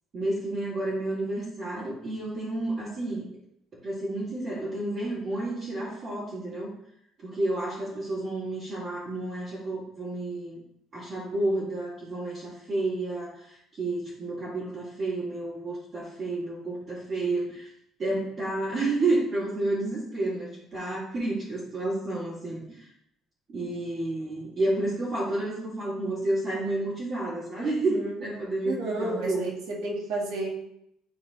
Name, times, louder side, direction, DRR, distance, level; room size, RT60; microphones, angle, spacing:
voice 1, 0.1-3.3 3.8-6.7 7.2-10.6 10.9-17.7 18.0-22.9 23.5-29.4, right 2 dB, 35° right, -11 dB, 2.3 m, -30 dB
voice 2, 27.6-28.2 28.7-30.5, right 2 dB, 80° right, -1 dB, 1.8 m, -32 dB
11.0 x 4.2 x 2.4 m, 0.75 s
cardioid pair, 155°, 0 cm